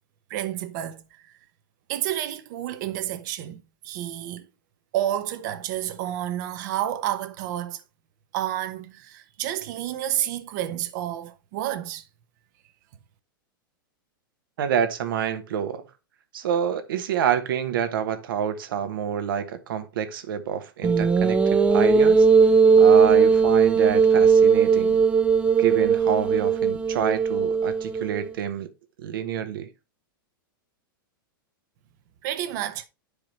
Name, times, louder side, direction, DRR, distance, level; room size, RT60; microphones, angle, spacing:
voice 1, 0.3-1.3 1.9-4.5 4.9-7.8 8.3-12.0 32.2-32.9, right 12 dB, 55° right, 0.9 m, -30 dB
voice 2, 14.6-15.8 16.3-22.3 22.8-25.0 25.6-28.7 29.0-29.7, right 8 dB, 75° right, 1.2 m, -27 dB
sound 1, 20.8-28.2, right 5 dB, 10° right, 0.4 m, -18 dB
10.5 x 4.8 x 3.1 m
hypercardioid pair, 130°, 12 cm